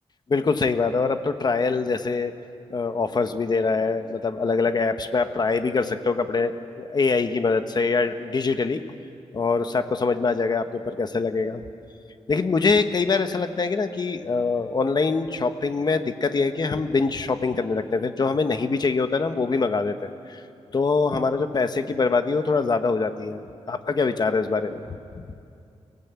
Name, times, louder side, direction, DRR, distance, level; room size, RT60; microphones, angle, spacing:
voice 1, 0.3-2.3 2.7-8.8 9.3-11.6 12.3-20.4 20.7-25.0, left 4 dB, 40° left, 9 dB, 1.2 m, -24 dB
29.5 x 18.0 x 8.2 m, 2.5 s
wide cardioid pair, 145°, 11 cm